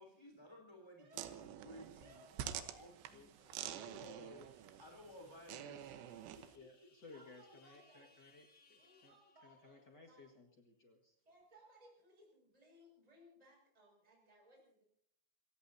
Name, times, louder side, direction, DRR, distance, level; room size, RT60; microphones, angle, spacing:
voice 1, 0.0-4.3 4.8-6.9, left 1 dB, 5° left, 0 dB, 2.4 m, -58 dB
voice 2, 1.0-1.4 2.0-2.8 5.6-6.0 7.0-8.1 8.7-10.4 11.2-14.8, right 1 dB, 10° right, 0 dB, 5.9 m, -65 dB
sound 1, 1.1-6.6, right 10 dB, 90° right, 3.6 m, -48 dB
sound 2, 2.0-10.1, left 4 dB, 35° left, 3.8 m, -73 dB
voice 3, 3.7-4.4 5.2-5.3 6.5-9.1 9.4-11.2, left 3 dB, 60° left, 3 dB, 1.1 m, -59 dB
28.0 x 17.0 x 2.8 m, 0.66 s
omnidirectional pair, 5.3 m